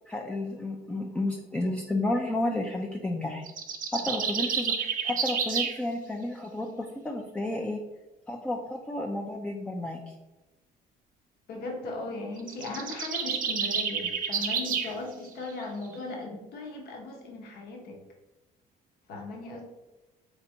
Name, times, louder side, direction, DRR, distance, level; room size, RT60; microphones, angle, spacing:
voice 1, 0.1-3.5 3.9-7.8 8.3-10.1, left 1 dB, 5° left, 1 dB, 0.3 m, -32 dB
sound 1, 3.5-5.8 12.4-14.9, right 6 dB, 55° right, 0.6 m, -29 dB
voice 2, 11.5-18.0 19.1-19.6, left 2 dB, 70° left, 0 dB, 0.9 m, -38 dB
3.9 x 3.3 x 2.7 m, 1.0 s
cardioid pair, 110°, 17 cm